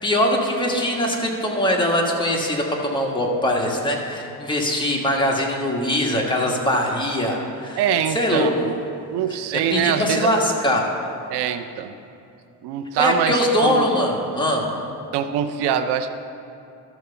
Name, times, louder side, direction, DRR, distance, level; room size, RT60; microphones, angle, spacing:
voice 1, 0.0-7.8 8.1-8.7 9.3-10.9 13.0-14.7, left 1 dB, 10° left, -1 dB, 1.5 m, -22 dB
voice 2, 7.8-8.7 9.1-10.3 11.3-11.9 12.6-13.4 13.6-13.8 15.1-16.1, right 9 dB, 85° right, 9 dB, 0.6 m, -23 dB
13.0 x 4.7 x 6.9 m, 2.6 s
cardioid pair, 115°, 39 cm